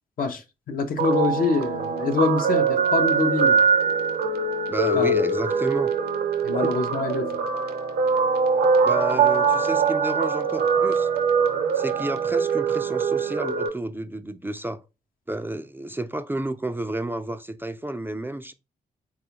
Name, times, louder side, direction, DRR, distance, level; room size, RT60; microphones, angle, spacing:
voice 1, 0.2-3.6 4.9-5.2 6.4-7.4, left 4 dB, 60° left, 0.6 m, -25 dB
Guitar, 1.0-13.7, right 5 dB, 75° right, 0.7 m, -22 dB
voice 2, 4.7-5.9 6.6-6.7 8.8-11.1 11.7-14.8 15.3-18.5, right 1 dB, 15° right, 0.3 m, -31 dB
3.4 x 2.3 x 2.8 m
supercardioid pair, 50°, 16 cm